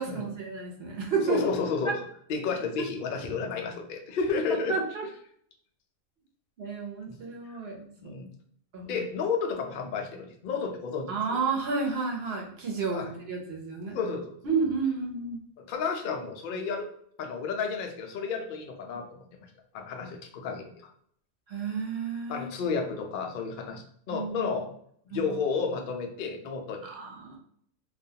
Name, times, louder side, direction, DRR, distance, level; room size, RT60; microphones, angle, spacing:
voice 1, 0.0-1.4 4.7-5.0 6.6-8.1 8.7-9.0 11.1-14.0 14.4-15.4 21.5-22.5 24.1-24.6 25.1-25.3 26.8-27.4, right 5 dB, 55° right, 0 dB, 0.8 m, -31 dB
voice 2, 1.2-2.0 2.3-4.8 7.1-7.2 7.5-7.6 8.0-8.3 8.8-11.4 12.9-13.1 13.9-14.3 15.6-16.9 17.2-20.9 22.3-24.7 25.1-27.0, left 5 dB, 80° left, 3 dB, 0.4 m, -32 dB
2.4 x 2.2 x 2.7 m, 0.64 s
omnidirectional pair, 1.4 m